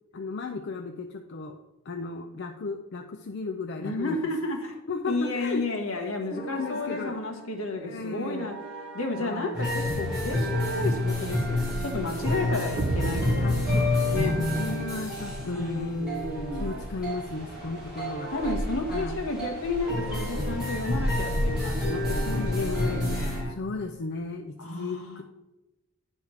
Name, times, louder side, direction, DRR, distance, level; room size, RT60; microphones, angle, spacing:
voice 1, 0.1-1.6 1.9-4.2 4.9-5.6 5.9-7.2 7.8-8.5 9.2-9.6 13.4-13.6 14.3-16.0 16.5-18.3 18.9-19.2 22.2-23.1 23.5-25.2, left 3 dB, 55° left, 5 dB, 0.5 m, -35 dB
voice 2, 3.8-4.8 5.1-8.5 8.9-13.8 14.1-14.3 15.4-16.8 18.3-23.6 24.6-25.2, left 2 dB, 75° left, 3 dB, 1.4 m, -32 dB
sound 1, 5.1-23.5, right 3 dB, 60° right, 0.9 m, -44 dB
Xylophones Practicing There is No Place Like Nebraska, 9.5-23.4, left 1 dB, 5° right, 2.8 m, -29 dB
sound 2, 12.8-15.4, right 3 dB, 45° right, 0.4 m, -33 dB
9.6 x 3.5 x 6.3 m, 1.0 s
head